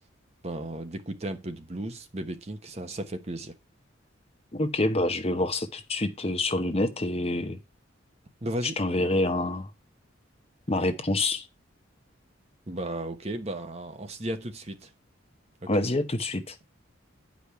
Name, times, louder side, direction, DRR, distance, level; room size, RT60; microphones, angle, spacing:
voice 1, 0.4-3.5 8.4-8.8 12.7-14.9 15.6-15.7, right 1 dB, 30° right, 1.0 m, -35 dB
voice 2, 4.5-7.6 8.8-9.7 10.7-11.5 15.7-16.6, left 2 dB, 30° left, 1.0 m, -27 dB
9.9 x 5.2 x 5.8 m
head